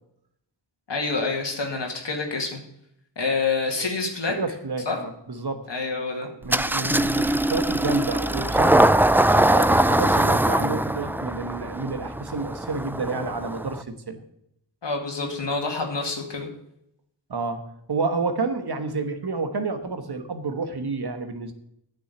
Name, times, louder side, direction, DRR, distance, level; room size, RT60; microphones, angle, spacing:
voice 1, 0.9-2.6 3.2-4.3 4.9-5.0 5.7-6.3 14.8-16.5, left 4 dB, 80° left, 1 dB, 2.1 m, -27 dB
voice 2, 4.3-5.7 6.2-8.9 9.3-14.2 17.3-21.5, right 3 dB, 65° right, 8 dB, 1.3 m, -30 dB
Engine starting, 6.5-13.8, right 1 dB, 5° right, 0.3 m, -22 dB
9.6 x 6.4 x 8.0 m, 0.77 s
wide cardioid pair, 70°, 42 cm